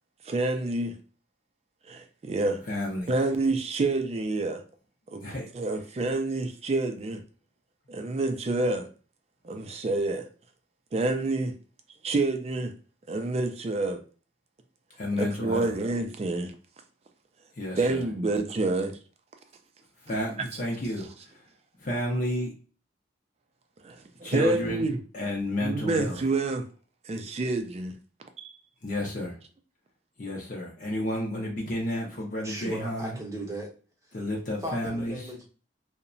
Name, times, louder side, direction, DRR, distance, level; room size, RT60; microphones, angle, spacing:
voice 1, 0.3-1.0 1.9-2.6 3.1-4.6 5.1-5.2 5.5-7.2 7.9-8.9 9.4-10.3 10.9-11.5 12.0-12.7 13.1-14.0 15.2-16.5 17.8-19.0 23.8-25.0 25.6-26.6 27.1-28.0 28.4-28.5, right 2 dB, 35° right, 0.3 m, -28 dB
voice 2, 2.6-3.1 5.2-5.8 15.0-15.7 17.5-18.1 20.0-21.5 21.8-22.5 24.2-24.9 25.1-26.2 28.8-29.4 30.2-33.2 34.1-35.3, left 1 dB, 45° left, 0.5 m, -31 dB
voice 3, 32.4-33.7 34.0-34.1 34.6-35.4, right 1 dB, 15° right, 0.7 m, -36 dB
2.8 x 2.1 x 2.5 m
head